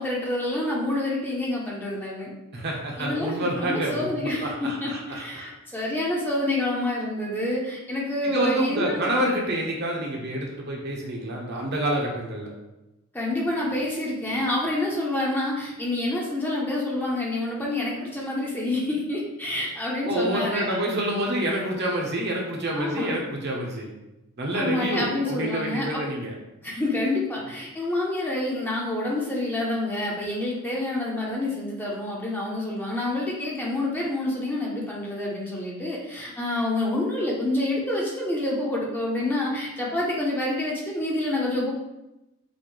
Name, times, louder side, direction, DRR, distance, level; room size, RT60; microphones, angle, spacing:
voice 1, 0.0-2.3 3.0-4.5 4.8-9.3 13.1-20.8 22.7-23.2 24.5-26.0 26.6-41.8, left 1 dB, 10° left, -4 dB, 0.8 m, -28 dB
voice 2, 2.5-5.5 8.2-12.5 20.0-23.9 24.4-26.3, right 1 dB, 50° right, -1 dB, 1.0 m, -28 dB
6.3 x 2.7 x 3.2 m, 0.96 s
head